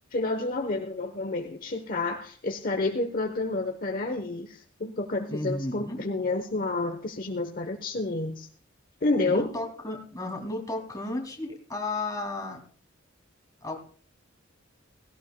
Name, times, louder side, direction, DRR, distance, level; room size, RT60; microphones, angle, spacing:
voice 1, 0.1-8.5 9.0-9.5, left 2 dB, 45° left, 5 dB, 1.0 m, -29 dB
voice 2, 5.3-6.0 9.3-12.6 13.6-13.8, left 2 dB, 20° left, 2 dB, 2.6 m, -33 dB
17.5 x 17.0 x 2.3 m, 0.43 s
head